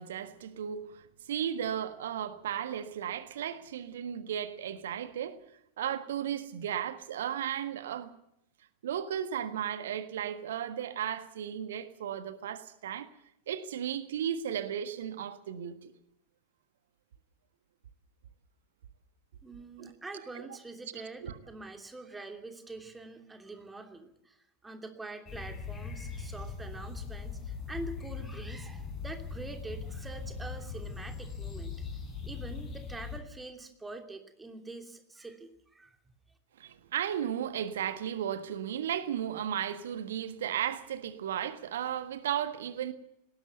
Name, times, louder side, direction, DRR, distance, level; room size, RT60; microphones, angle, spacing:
voice 1, 0.0-5.4 5.8-8.1 8.8-13.1 13.5-15.9 19.8-19.9 20.3-20.5 21.2-21.4 36.6-42.9, right 9 dB, 60° right, 1.5 m, -35 dB
voice 2, 19.4-24.4 24.6-36.1, right 2 dB, 10° right, 2.9 m, -45 dB
sound 1, 25.3-33.2, left 5 dB, 25° left, 5.4 m, -40 dB
19.5 x 17.5 x 8.0 m
figure-of-eight pair, 90°, 0 cm